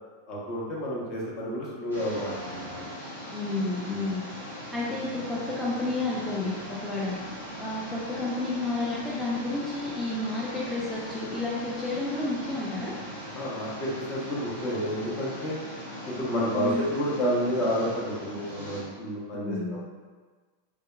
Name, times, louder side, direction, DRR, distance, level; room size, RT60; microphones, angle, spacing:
voice 1, 0.3-2.8 3.9-4.1 13.3-15.6 16.1-19.8, equal, 35° left, -5 dB, 0.8 m, -30 dB
sound 1, 1.9-18.8, equal, 90° left, 1.4 m, -40 dB
voice 2, 3.3-7.1 7.6-13.0 16.5-16.9 19.3-19.8, left 2 dB, 5° left, -7 dB, 0.4 m, -31 dB
3.2 x 2.7 x 2.3 m, 1.4 s
figure-of-eight pair, 90°, 0 cm